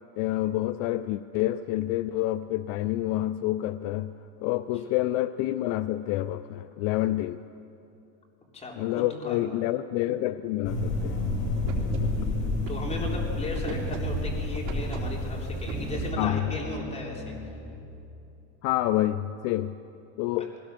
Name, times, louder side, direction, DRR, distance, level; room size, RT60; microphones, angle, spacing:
voice 1, 0.2-4.1 4.4-7.4 8.8-11.2 12.0-12.2 16.2-16.4 18.6-19.7 20.2-20.5, left 15 dB, 65° left, 12 dB, 0.6 m, -28 dB
voice 2, 8.5-9.4 12.7-17.3, left 2 dB, 15° left, -2 dB, 3.6 m, -36 dB
sound 1, 10.6-16.1, left 3 dB, 85° left, 7.0 m, -31 dB
sound 2, 11.1-16.3, right 5 dB, 65° right, 3.3 m, -36 dB
sound 3, 12.2-17.8, equal, ahead, 2.4 m, -39 dB
20.5 x 17.5 x 7.6 m, 2.8 s
cardioid pair, 145°, 40 cm